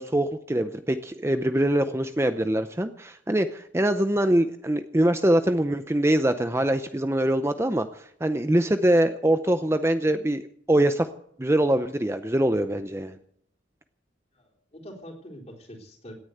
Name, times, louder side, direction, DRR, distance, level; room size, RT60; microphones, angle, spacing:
voice 1, 0.0-11.1 11.4-13.2, right 1 dB, 15° right, 9 dB, 0.6 m, -23 dB
voice 2, 14.3-16.1, equal, 35° left, 0 dB, 3.6 m, -44 dB
17.5 x 10.0 x 7.9 m, 0.68 s
head